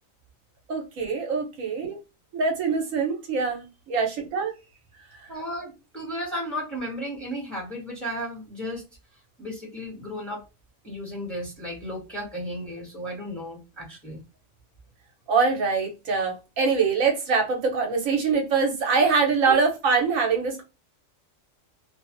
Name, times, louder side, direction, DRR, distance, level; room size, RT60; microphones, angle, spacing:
voice 1, 0.7-2.0 2.3-4.5 15.3-20.6, right 5 dB, 75° right, 1.1 m, -24 dB
voice 2, 5.3-8.8 9.4-10.4 10.8-14.2, equal, ahead, 1.1 m, -34 dB
2.6 x 2.4 x 2.4 m
omnidirectional pair, 1.4 m